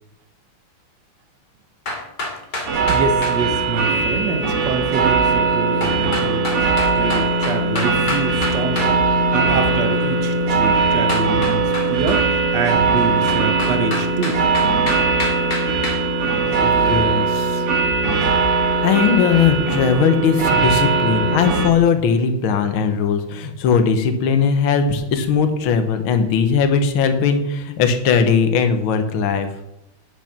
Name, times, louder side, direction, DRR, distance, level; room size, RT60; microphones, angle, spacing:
sound 1, 1.9-3.4 5.8-8.9 11.1-12.2 13.3-16.0, left 2 dB, 50° left, 2.9 m, -27 dB
sound 2, 2.7-21.7, right 4 dB, 90° right, 2.8 m, -19 dB
voice 1, 2.9-14.4, right 4 dB, 55° right, 6 dB, 1.6 m, -26 dB
voice 2, 16.6-17.6 18.8-29.5, left 6 dB, 70° left, 7 dB, 1.8 m, -19 dB
9.6 x 7.4 x 5.9 m, 0.84 s
omnidirectional pair, 2.4 m